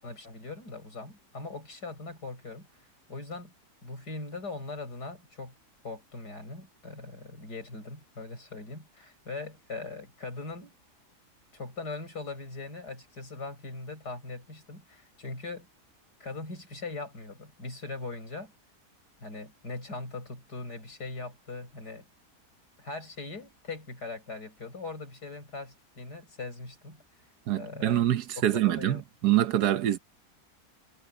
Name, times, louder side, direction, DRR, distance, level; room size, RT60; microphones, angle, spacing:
voice 1, 0.0-2.7 3.1-3.5 3.8-5.5 5.8-10.7 11.5-15.7 16.2-18.5 19.2-22.1 22.8-27.0 27.5-28.0 28.4-29.0, left 3 dB, 80° left, 8.0 m, -40 dB
voice 2, 27.5-30.0, right 12 dB, 75° right, 1.4 m, -25 dB
omnidirectional pair, 1.7 m